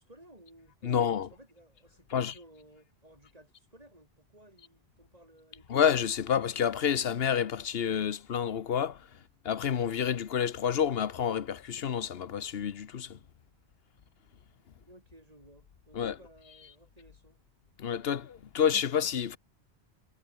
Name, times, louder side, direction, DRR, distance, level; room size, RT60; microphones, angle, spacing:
voice 1, 0.0-5.8 14.8-17.4, right 1 dB, 35° right, 5.9 m, -57 dB
voice 2, 0.8-1.3 2.1-2.3 5.7-9.1 9.4-13.2 15.9-16.2 17.8-19.4, left 8 dB, 65° left, 1.1 m, -29 dB
omnidirectional pair, 1.1 m